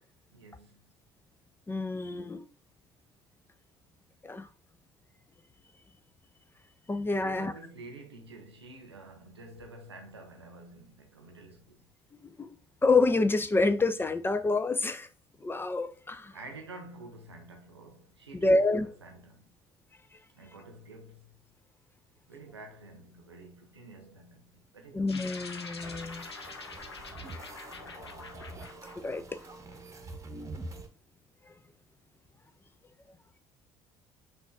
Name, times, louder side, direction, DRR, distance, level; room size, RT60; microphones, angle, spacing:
voice 1, 0.3-0.8 7.2-11.9 16.3-19.5 20.3-21.3 22.3-25.2 26.4-26.6 27.3-27.5, right 2 dB, 85° right, 0.9 m, -49 dB
voice 2, 1.7-2.4 4.2-4.5 6.9-7.5 12.4-12.5 12.8-15.1 15.4-16.3 18.3-18.9 24.9-26.3 29.0-29.2, left 3 dB, 15° left, 0.5 m, -27 dB
sound 1, 25.1-29.8, left 4 dB, 85° left, 0.5 m, -45 dB
sound 2, 25.8-30.9, right 2 dB, 25° right, 1.0 m, -45 dB
5.8 x 2.4 x 3.6 m
figure-of-eight pair, 55°, 13 cm